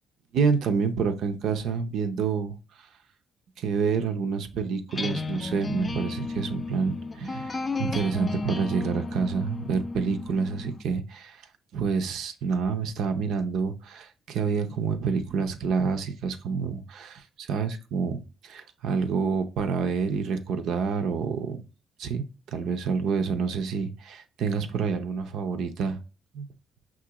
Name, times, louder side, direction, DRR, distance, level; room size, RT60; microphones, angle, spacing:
voice 1, 0.3-2.5 3.6-11.4 11.7-21.6 22.0-26.0 26.3-26.5, right 5 dB, 75° right, 0.5 m, -28 dB
sound 1, 4.9-10.8, left 3 dB, 25° left, 0.4 m, -33 dB
5.8 x 2.5 x 2.8 m
cardioid pair, 105°, 0 cm